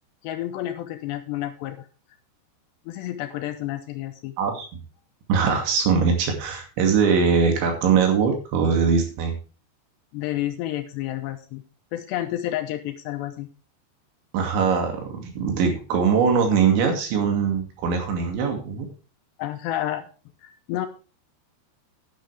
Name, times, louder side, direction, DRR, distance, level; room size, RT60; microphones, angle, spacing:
voice 1, 0.2-1.9 2.9-4.4 10.1-11.6 11.9-13.5 19.4-20.0 20.4-20.9, left 13 dB, 80° left, 7 dB, 3.0 m, -30 dB
voice 2, 5.3-9.4 14.3-18.9, right 6 dB, 85° right, 3 dB, 4.8 m, -21 dB
11.0 x 10.0 x 3.5 m, 0.35 s
omnidirectional pair, 5.2 m